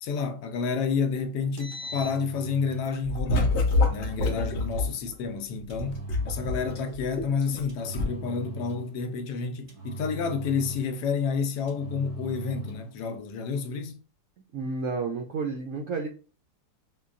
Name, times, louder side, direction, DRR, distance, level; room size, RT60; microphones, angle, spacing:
voice 1, 0.0-3.6 3.9-14.0, left 5 dB, 80° left, 1.2 m, -30 dB
Engine, 1.4-2.9 3.7-4.9 5.7-7.0 7.7-9.0 9.7-11.0 11.7-12.9, right 1 dB, 45° right, 0.4 m, -40 dB
sound 1, 2.8-4.9 5.7-7.6 7.9-8.0, left 2 dB, 60° left, 0.7 m, -26 dB
voice 2, 14.5-16.1, right 4 dB, 70° right, 0.8 m, -31 dB
5.2 x 2.2 x 2.4 m
omnidirectional pair, 1.8 m